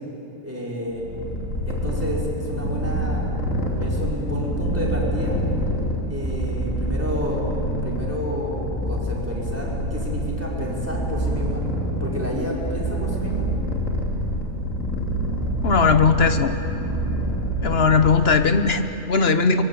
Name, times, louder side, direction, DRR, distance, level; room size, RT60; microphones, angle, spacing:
voice 1, 0.4-1.1 1.6-3.3 3.8-5.4 6.1-7.4 7.8-11.6 12.0-13.5, equal, 10° right, -4 dB, 4.8 m, -30 dB
Purr, 0.9-18.6, equal, 90° left, 3.3 m, -26 dB
voice 2, 15.6-16.5 17.6-19.6, left 5 dB, 55° left, 9 dB, 1.3 m, -18 dB
24.5 x 22.5 x 8.5 m, 2.8 s
omnidirectional pair, 1.3 m